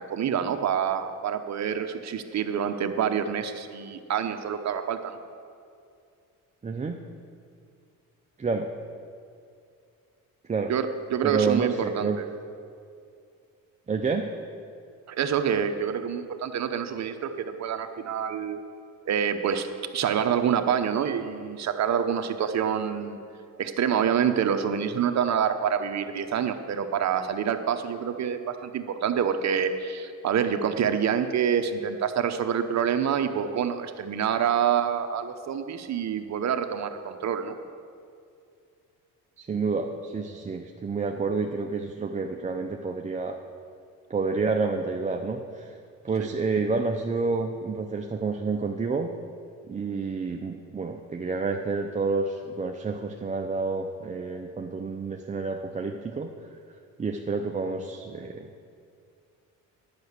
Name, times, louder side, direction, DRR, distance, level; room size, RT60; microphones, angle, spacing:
voice 1, 0.0-5.2 10.7-12.2 15.1-18.6 19.1-23.2 23.6-37.6 46.2-46.3, right 8 dB, 50° right, 8 dB, 0.9 m, -27 dB
voice 2, 6.6-7.0 8.4-8.7 10.5-10.7 11.2-12.2 13.9-14.3 39.4-43.4 44.1-45.7 46.0-49.1 49.7-56.3 57.0-58.5, right 4 dB, 20° right, 3 dB, 0.6 m, -29 dB
10.5 x 5.8 x 8.1 m, 2.4 s
cardioid pair, 90°, 35 cm